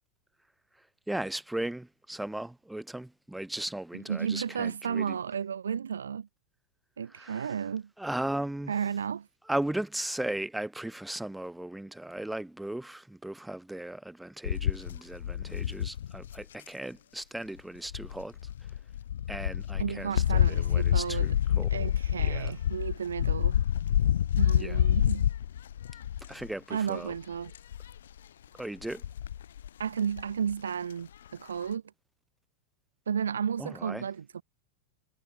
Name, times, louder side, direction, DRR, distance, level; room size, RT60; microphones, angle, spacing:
voice 1, 1.1-5.2 7.1-7.5 8.0-8.8 9.5-18.4 19.3-21.9 22.2-22.5 24.6-24.8 26.3-27.1 28.6-29.0 33.6-34.0, right 1 dB, 5° right, 2.0 m, -37 dB
voice 2, 3.9-6.3 7.0-7.9 8.7-9.3 19.8-21.3 21.7-23.6 24.4-25.3 26.7-27.5 29.8-31.8 33.1-34.4, right 7 dB, 70° right, 0.5 m, -33 dB
sound 1, 14.4-16.7 17.9-26.5 26.9-27.2 27.5-28.0 28.8-29.7 30.2-30.3 30.5-30.6, left 10 dB, 65° left, 0.4 m, -28 dB
figure-of-eight pair, 90°, 0 cm